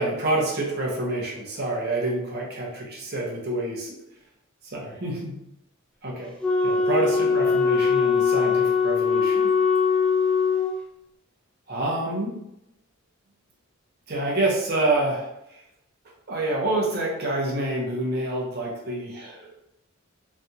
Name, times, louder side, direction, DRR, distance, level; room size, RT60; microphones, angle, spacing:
voice 1, 0.0-4.0 4.7-5.4 6.0-6.3 6.6-9.5 11.7-12.4 14.1-15.6 16.3-19.5, right 2 dB, 50° right, -2 dB, 0.9 m, -27 dB
Wind instrument woodwind instrument, 6.4-10.7, left 5 dB, 5° left, 0.5 m, -21 dB
3.3 x 2.4 x 2.8 m, 0.83 s
head